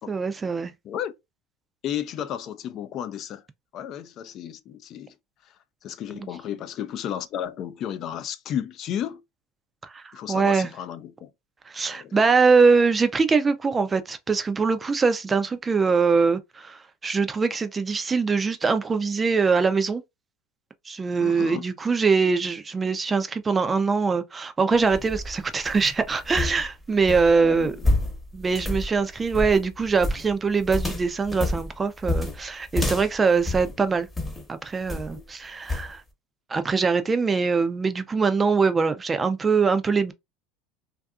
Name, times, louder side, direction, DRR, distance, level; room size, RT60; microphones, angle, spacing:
voice 1, 0.1-0.7 9.8-10.0 10.3-10.7 11.7-20.0 20.9-27.7 28.3-34.1 34.5-36.0 36.5-40.1, right 4 dB, 20° right, 0.4 m, -23 dB
voice 2, 1.8-3.4 3.7-5.1 5.4-5.5 5.8-9.2 10.1-11.3 11.9-12.2 21.2-21.6 27.4-27.9, left 10 dB, 50° left, 0.4 m, -33 dB
sound 1, 24.7-34.4 34.9-35.2 35.7-35.9, left 2 dB, 10° left, 0.9 m, -29 dB
2.6 x 2.4 x 2.3 m
hypercardioid pair, 95°, 0 cm